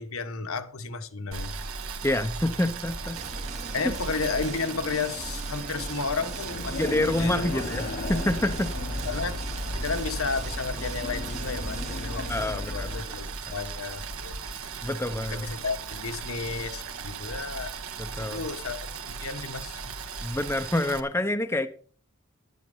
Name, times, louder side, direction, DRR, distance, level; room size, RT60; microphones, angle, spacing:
voice 1, 0.0-1.5 3.7-7.6 8.7-9.4 9.7-14.4 15.3-17.7 18.2-20.0, left 4 dB, 70° left, 1.3 m, -33 dB
Boiling, 1.3-21.0, right 4 dB, 75° right, 1.4 m, -37 dB
voice 2, 2.0-3.2 6.8-8.7 12.3-13.1 13.4-13.5 14.8-15.4 18.0-18.5 20.2-21.7, left 1 dB, 10° left, 0.6 m, -27 dB
sound 1, 3.1-12.5, right 3 dB, 30° right, 0.9 m, -42 dB
sound 2, 6.5-13.0, left 2 dB, 45° left, 0.8 m, -35 dB
11.0 x 10.5 x 5.5 m
head